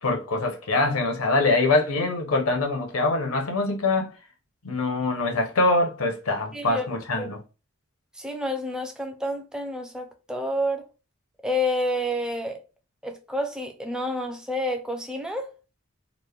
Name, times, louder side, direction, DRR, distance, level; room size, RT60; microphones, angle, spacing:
voice 1, 0.0-4.1 4.6-7.4, left 2 dB, 85° left, 0.8 m, -24 dB
voice 2, 6.5-6.9 7.2-7.3 8.2-10.8 11.4-12.6 13.0-15.5, left 1 dB, 5° right, 0.4 m, -29 dB
3.0 x 2.1 x 2.3 m
head